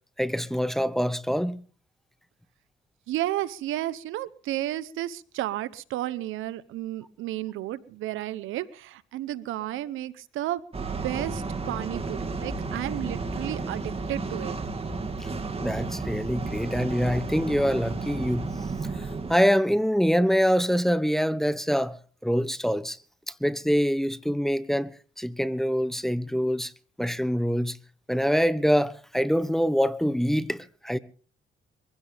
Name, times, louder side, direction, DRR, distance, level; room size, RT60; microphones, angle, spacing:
voice 1, 0.2-1.6 15.2-15.3 15.6-18.5 19.0-22.0 22.2-23.0 23.3-24.9 25.2-26.7 27.0-27.8 28.1-31.0, equal, ahead, 1.1 m, -25 dB
voice 2, 3.1-10.6 11.0-14.6, right 14 dB, 85° right, 0.9 m, -32 dB
sound 1, 10.7-19.3, right 3 dB, 30° right, 2.5 m, -32 dB
23.0 x 16.0 x 3.5 m
cardioid pair, 90°, 20 cm